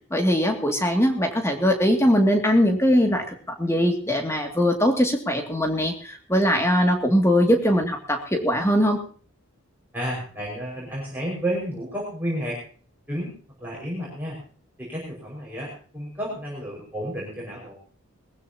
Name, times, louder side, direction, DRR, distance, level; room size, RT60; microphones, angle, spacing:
voice 1, 0.1-9.0, equal, 10° left, 3 dB, 2.5 m, -21 dB
voice 2, 9.9-12.6 13.1-13.3 13.6-14.4 14.8-17.7, equal, 10° right, -5 dB, 5.7 m, -31 dB
20.5 x 15.0 x 3.0 m, 0.42 s
head